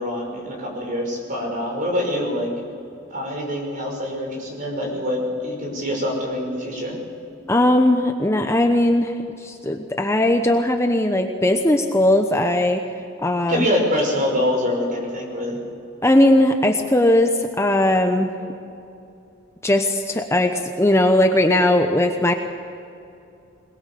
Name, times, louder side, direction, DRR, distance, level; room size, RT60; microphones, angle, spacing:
voice 1, 0.0-2.5 3.1-7.0 13.5-15.6, left 1 dB, 45° right, 1 dB, 5.7 m, -25 dB
voice 2, 7.5-9.2 9.4-12.8 13.2-13.7 16.0-18.3 19.6-22.3, left 1 dB, 15° left, 4 dB, 1.0 m, -18 dB
22.0 x 20.5 x 6.9 m, 2.7 s
head